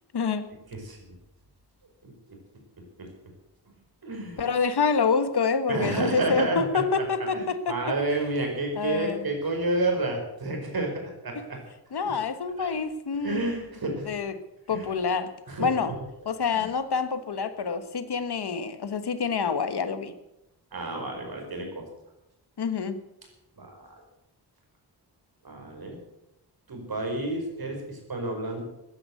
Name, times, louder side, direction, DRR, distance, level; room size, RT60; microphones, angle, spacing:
voice 1, 0.1-0.5 4.4-7.8 8.8-9.3 11.9-13.4 14.0-14.3 14.7-15.3 15.6-15.9 16.2-20.1 22.6-23.0, left 5 dB, 70° left, 11 dB, 1.4 m, -27 dB
voice 2, 2.0-2.4 4.0-4.4 5.7-6.6 7.3-11.6 12.6-12.7 13.2-14.1 14.7-14.9 15.5-15.9 16.5-16.7 20.7-21.8 23.6-24.0 25.4-26.0 26.7-28.7, right 2 dB, 60° right, 2 dB, 5.1 m, -30 dB
15.0 x 10.5 x 7.7 m, 0.89 s
wide cardioid pair, 135°, 41 cm